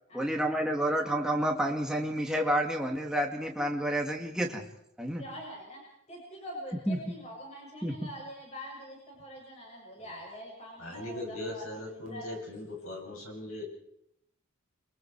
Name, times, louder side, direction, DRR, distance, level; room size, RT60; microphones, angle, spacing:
voice 1, 0.1-4.7 5.0-5.2 6.9-7.0 7.8-7.9, right 1 dB, 5° right, 1 dB, 2.1 m, -29 dB
voice 2, 5.2-5.8 6.1-11.7 11.9-12.2, equal, 30° left, -2 dB, 7.4 m, -44 dB
voice 3, 10.8-13.6, left 2 dB, 85° left, 0 dB, 8.0 m, -39 dB
30.0 x 22.5 x 4.8 m, 0.78 s
head